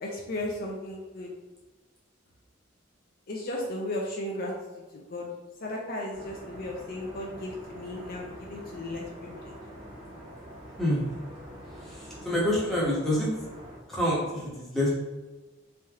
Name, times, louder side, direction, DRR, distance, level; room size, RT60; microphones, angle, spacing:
voice 1, 0.0-1.3 3.3-4.5 4.9-5.3 5.6-9.5, left 1 dB, 50° left, -1 dB, 0.5 m, -35 dB
sound 1, 6.1-13.8, equal, 20° right, 1.3 m, -45 dB
voice 2, 11.9-13.3 13.9-15.0, left 1 dB, ahead, -7 dB, 1.1 m, -27 dB
3.2 x 2.9 x 3.5 m, 1.2 s
head